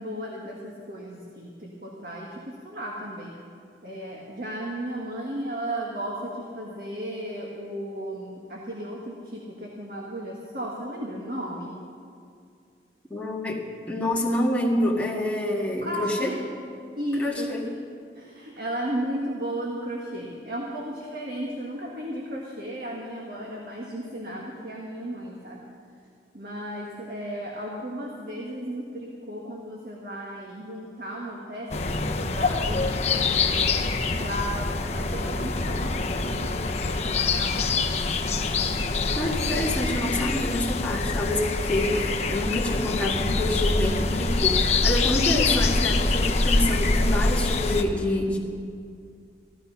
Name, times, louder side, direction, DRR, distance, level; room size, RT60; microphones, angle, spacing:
voice 1, 0.0-3.3 3.8-11.7 15.8-16.4 17.0-17.8 18.1-25.6 26.3-33.6 34.2-37.9, equal, 55° right, -2 dB, 1.6 m, -34 dB
voice 2, 13.1-16.3 17.2-17.6 39.2-48.4, left 1 dB, 10° left, -4 dB, 1.8 m, -27 dB
sound 1, 31.7-47.8, left 3 dB, 40° left, 0.8 m, -25 dB
15.5 x 13.0 x 5.7 m, 2.4 s
head